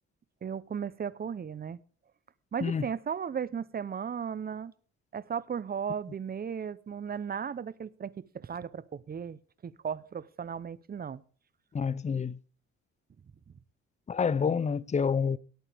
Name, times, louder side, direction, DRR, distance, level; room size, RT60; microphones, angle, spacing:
voice 1, 0.4-1.8 2.5-4.7 5.1-11.2, right 7 dB, 30° right, 0.7 m, -36 dB
voice 2, 11.7-12.4 14.1-15.4, left 6 dB, 25° left, 0.5 m, -28 dB
17.5 x 9.1 x 3.5 m
cardioid pair, 90°, 30 cm